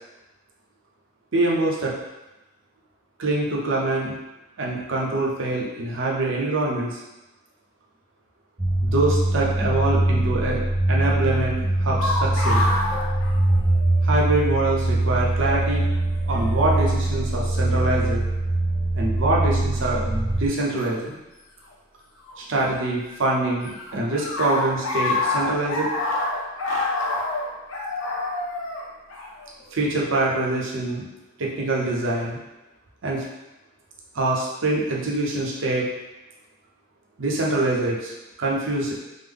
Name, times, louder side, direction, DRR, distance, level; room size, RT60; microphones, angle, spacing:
voice 1, 1.3-2.0 3.2-4.1 4.6-7.0 8.8-10.6 10.9-12.6 14.0-15.9 16.2-18.2 19.0-21.2 22.4-25.9 29.7-31.0 31.4-32.4 33.0-33.2 34.1-35.9 37.2-38.9, right 2 dB, 60° right, -3 dB, 0.6 m, -24 dB
sound 1, 8.6-20.5, right 1 dB, 15° right, 0.3 m, -22 dB
sound 2, 12.0-14.1 14.3-14.4 15.4-15.7 16.7-16.9 17.7-18.1 20.8-20.9 22.2-23.1 23.4-29.9, left 2 dB, 70° left, 0.7 m, -27 dB
3.6 x 2.0 x 3.4 m, 1.0 s
head